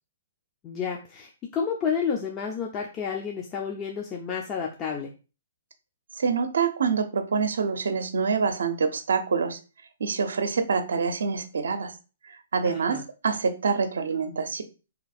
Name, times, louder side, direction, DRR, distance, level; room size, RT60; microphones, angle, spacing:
voice 1, 0.6-5.1 12.6-13.0, left 6 dB, 25° left, 0 dB, 0.6 m, -30 dB
voice 2, 6.2-9.6 10.0-11.9 12.3-14.6, right 5 dB, 75° right, 9 dB, 0.6 m, -26 dB
3.3 x 2.9 x 4.1 m, 0.33 s
hypercardioid pair, 135°, 0 cm